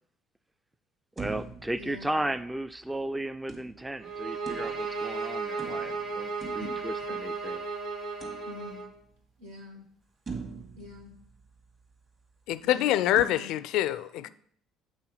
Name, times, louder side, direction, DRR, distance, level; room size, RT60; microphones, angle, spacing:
voice 1, 1.2-7.7, right 1 dB, 10° right, 0.4 m, -35 dB
sound 1, 1.2-2.8 3.5-5.1 5.6-7.5 8.2-9.1 9.5-9.6 10.3-11.9 13.2-13.3, right 5 dB, 40° right, 2.2 m, -43 dB
voice 2, 1.8-2.3 6.6-6.7 7.0-7.2 8.4-8.9 9.4-9.8 10.8-11.1 12.6-13.5 14.2-14.3, left 2 dB, 75° right, 1.8 m, -46 dB
sound 2, 4.0-8.9, right 4 dB, 55° right, 1.5 m, -34 dB
voice 3, 12.5-14.3, left 13 dB, 60° left, 0.3 m, -25 dB
8.2 x 4.1 x 5.6 m
figure-of-eight pair, 55°, 0 cm